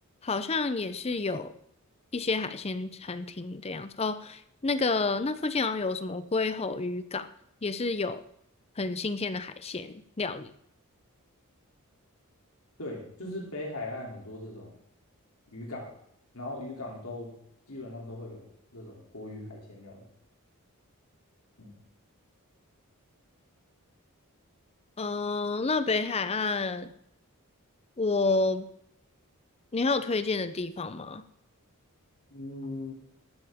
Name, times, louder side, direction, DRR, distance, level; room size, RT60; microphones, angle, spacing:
voice 1, 0.2-1.5 2.1-7.3 7.6-8.2 8.8-10.5 25.0-26.9 28.0-28.7 29.7-31.2, left 3 dB, 25° left, 12 dB, 0.6 m, -29 dB
voice 2, 12.8-14.7 15.5-15.9 16.3-17.3 17.7-20.1 21.6-21.7 32.3-32.9, left 2 dB, 70° left, -2 dB, 3.0 m, -39 dB
14.5 x 11.5 x 3.6 m, 0.73 s
head